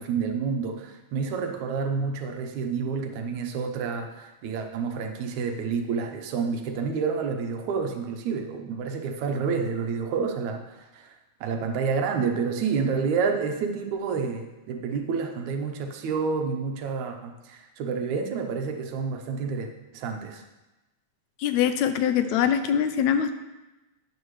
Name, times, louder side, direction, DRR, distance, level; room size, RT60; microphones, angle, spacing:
voice 1, 0.0-20.4, right 5 dB, 80° right, 4 dB, 2.3 m, -29 dB
voice 2, 21.4-23.3, left 9 dB, 80° left, 9 dB, 2.0 m, -23 dB
12.0 x 8.9 x 3.2 m, 1.0 s
omnidirectional pair, 3.3 m